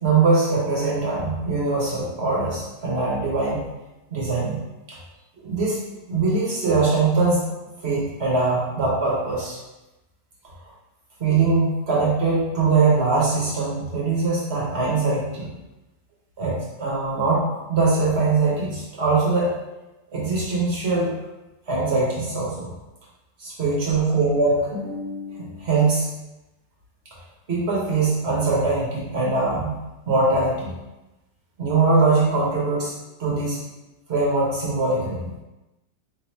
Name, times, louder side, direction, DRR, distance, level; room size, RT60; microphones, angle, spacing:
voice 1, 0.0-3.6 4.1-4.6 4.9-5.0 5.4-5.8 6.1-7.4 7.8-9.6 11.2-15.5 16.4-19.5 20.1-21.1 21.7-22.7 23.4-26.1 27.5-29.8 30.1-30.7 31.6-32.9 33.2-33.6 34.1-35.4, right 3 dB, 45° right, -5 dB, 1.1 m, -22 dB
3.5 x 2.8 x 4.5 m, 1.0 s
omnidirectional pair, 1.9 m